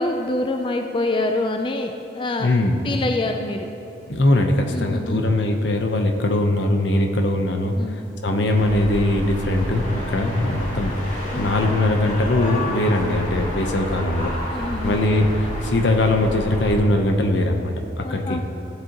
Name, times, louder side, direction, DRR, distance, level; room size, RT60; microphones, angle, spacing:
voice 1, 0.0-2.5 2.8-3.7 4.7-5.2 7.7-8.0 11.3-11.6 14.5-15.0 18.0-18.4, left 2 dB, 25° left, 4 dB, 0.4 m, -25 dB
voice 2, 2.4-2.8 4.1-14.3 14.8-18.4, left 1 dB, 80° left, 4 dB, 0.8 m, -21 dB
sound 1, 8.5-16.8, left 1 dB, 45° left, 1.9 m, -30 dB
15.0 x 7.5 x 3.0 m, 2.7 s
head